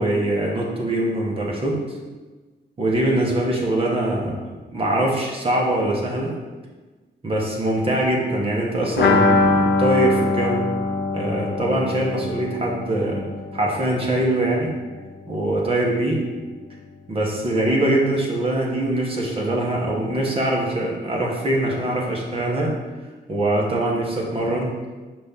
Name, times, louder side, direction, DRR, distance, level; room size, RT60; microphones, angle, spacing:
voice 1, 0.0-2.0 2.8-6.3 7.2-10.6 11.1-13.3 13.5-14.7 15.3-16.2 17.1-22.7 23.3-24.7, right 1 dB, 30° right, -2 dB, 1.1 m, -23 dB
sound 1, 9.0-14.6 14.8-14.9 15.2-15.3, left 3 dB, 70° left, 0.7 m, -22 dB
5.2 x 3.5 x 5.6 m, 1.3 s
wide cardioid pair, 170°, 19 cm